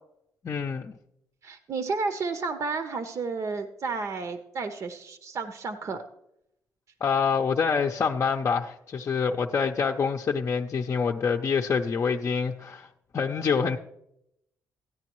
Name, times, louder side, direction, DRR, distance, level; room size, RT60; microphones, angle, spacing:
voice 1, 0.4-0.9 7.0-12.9 13.1-13.8, left 5 dB, 40° left, 2 dB, 0.6 m, -26 dB
voice 2, 1.4-6.0, right 4 dB, 50° right, 8 dB, 0.8 m, -32 dB
14.5 x 9.7 x 3.1 m, 0.78 s
cardioid pair, 95°, 7 cm